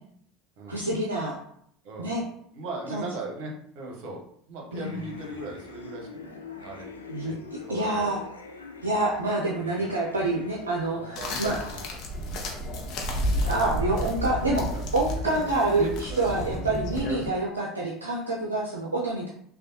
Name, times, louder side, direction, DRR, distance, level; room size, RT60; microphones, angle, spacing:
voice 1, 0.7-1.4 2.0-2.2 2.9-3.1 4.7-5.0 7.1-8.2 8.8-11.6 13.3-14.7 14.9-19.3, right 2 dB, 90° right, -3 dB, 0.4 m, -27 dB
voice 2, 1.8-2.1 2.5-6.9 7.2-7.4 7.6-8.2 9.6-9.9 11.0-11.8 12.2-12.4 14.2-14.3 14.7-14.9 15.2-16.3, right 2 dB, 60° right, 0 dB, 0.9 m, -39 dB
sound 1, 4.7-11.9, left 4 dB, 90° left, 0.4 m, -43 dB
sound 2, 11.2-17.3, equal, 55° left, 0.7 m, -31 dB
3.3 x 2.3 x 2.7 m, 0.66 s
hypercardioid pair, 75°, 0 cm